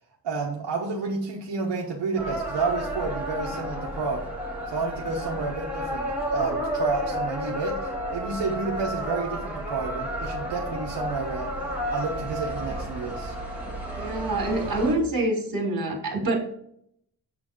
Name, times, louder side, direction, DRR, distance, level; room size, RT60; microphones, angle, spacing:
voice 1, 0.2-4.3 4.7-11.5 11.9-13.3, right 4 dB, 85° right, -2 dB, 1.3 m, -30 dB
sound 1, 2.2-14.9, equal, 5° right, 2.2 m, -31 dB
voice 2, 13.9-16.4, right 2 dB, 55° right, 1 dB, 2.6 m, -26 dB
8.1 x 4.1 x 5.0 m, 0.69 s
wide cardioid pair, 115°, 41 cm